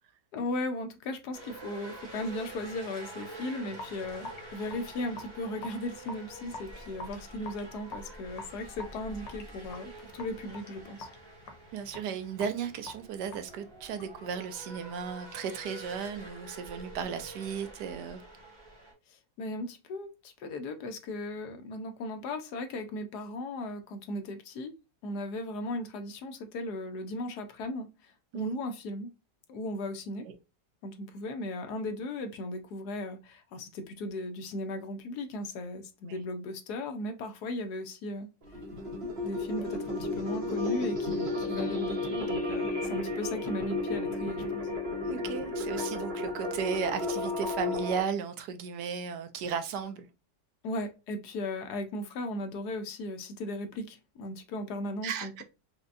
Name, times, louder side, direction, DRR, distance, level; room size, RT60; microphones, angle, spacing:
voice 1, 0.3-11.1 19.1-24.7 25.0-29.1 29.5-30.3 30.8-38.3 39.2-44.7 50.6-55.4, left 1 dB, 70° left, 1.2 m, -37 dB
sound 1, 1.3-18.9, right 2 dB, 15° right, 1.1 m, -47 dB
Raindrop / Drip, 3.7-14.2, left 2 dB, 85° left, 1.6 m, -47 dB
voice 2, 11.7-18.2 28.3-28.6 30.3-30.4 36.1-36.2 45.1-50.1 55.0-55.4, right 7 dB, 75° right, 1.2 m, -35 dB
sound 2, 38.4-48.0, left 2 dB, 45° right, 0.9 m, -33 dB
5.1 x 2.2 x 2.4 m
omnidirectional pair, 1.9 m